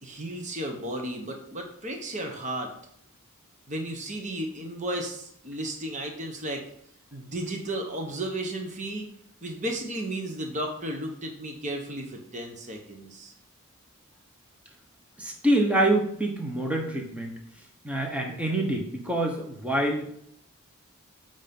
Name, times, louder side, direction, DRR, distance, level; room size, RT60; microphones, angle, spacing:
voice 1, 0.0-2.7 3.7-6.6 7.1-9.1 9.4-13.3, right 1 dB, 35° right, 3 dB, 1.1 m, -34 dB
voice 2, 15.2-17.3 17.8-20.1, right 1 dB, 5° right, 2 dB, 1.1 m, -26 dB
8.2 x 5.3 x 5.3 m, 0.70 s
head